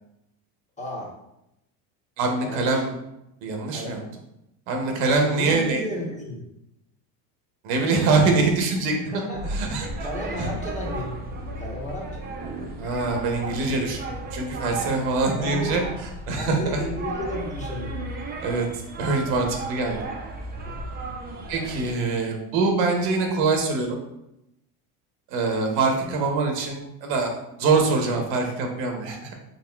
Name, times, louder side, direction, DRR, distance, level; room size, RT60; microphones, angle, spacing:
voice 1, 0.8-1.1 2.4-2.8 3.7-4.0 5.2-6.4 9.0-9.5 10.0-11.2 11.6-12.2 14.8-15.0 15.4-15.8 16.3-17.9 20.6-20.8 25.9-26.1, left 1 dB, 15° left, -4 dB, 1.0 m, -33 dB
voice 2, 2.2-2.9 3.4-4.0 4.7-5.8 7.6-9.2 9.5-9.9 10.4-10.5 12.8-14.0 14.3-15.8 16.3-16.8 18.4-18.7 19.0-20.0 21.5-24.0 25.3-29.3, right 3 dB, 70° right, 2 dB, 1.0 m, -24 dB
sound 1, 9.3-21.9, right 2 dB, 20° right, 0.5 m, -34 dB
4.1 x 3.5 x 2.3 m, 0.86 s
supercardioid pair, 115°, 46 cm